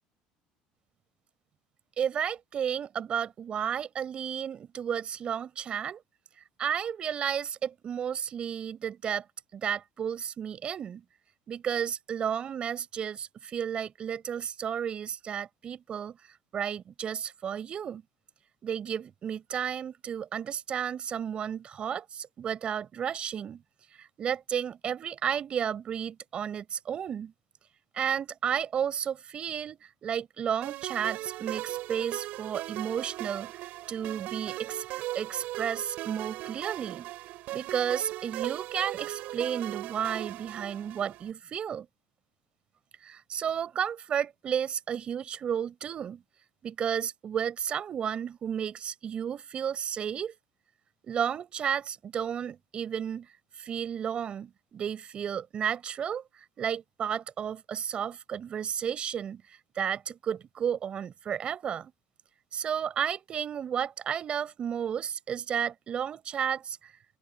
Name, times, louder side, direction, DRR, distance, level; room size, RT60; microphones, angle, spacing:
voice 1, 2.0-6.0 6.6-9.2 9.5-11.0 11.5-18.0 18.6-23.6 24.0-27.3 27.9-33.5 33.9-34.8 35.1-37.1 37.5-41.9 43.0-46.2 46.6-50.3 51.0-53.3 53.6-59.4 59.8-61.9 62.5-66.9, right 8 dB, 40° right, 4.1 m, -32 dB
sound 1, 30.6-41.3, right 17 dB, 65° right, 6.2 m, -38 dB
open air
supercardioid pair, 110°, 3 cm